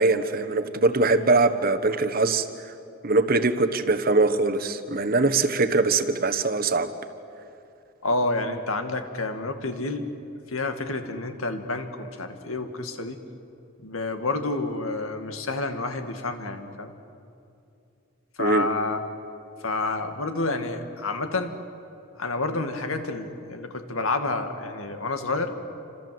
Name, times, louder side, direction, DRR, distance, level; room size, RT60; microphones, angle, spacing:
voice 1, 0.0-2.7 3.0-6.9 18.4-18.7, right 3 dB, 45° right, 9 dB, 1.3 m, -22 dB
voice 2, 8.0-10.1 10.5-13.2 13.8-16.9 18.4-19.0 19.6-21.6 22.2-25.5, left 2 dB, 80° left, 6 dB, 2.3 m, -29 dB
28.5 x 26.5 x 7.9 m, 2.6 s
head